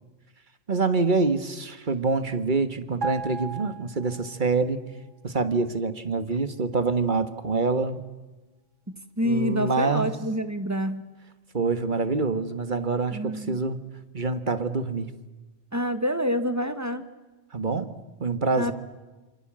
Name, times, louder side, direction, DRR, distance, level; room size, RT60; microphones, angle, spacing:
voice 1, 0.7-4.8 5.2-8.0 9.2-10.1 11.5-13.8 14.1-15.1 17.5-17.9 18.2-18.7, right 3 dB, 40° right, 12 dB, 1.6 m, -26 dB
sound 1, 3.0-4.6 4.9-5.1, right 4 dB, 75° right, 1.8 m, -35 dB
voice 2, 9.2-11.0 13.1-13.6 15.7-17.0 18.6-18.7, equal, 15° right, 11 dB, 1.5 m, -27 dB
27.5 x 26.0 x 7.6 m, 1.2 s
omnidirectional pair, 1.3 m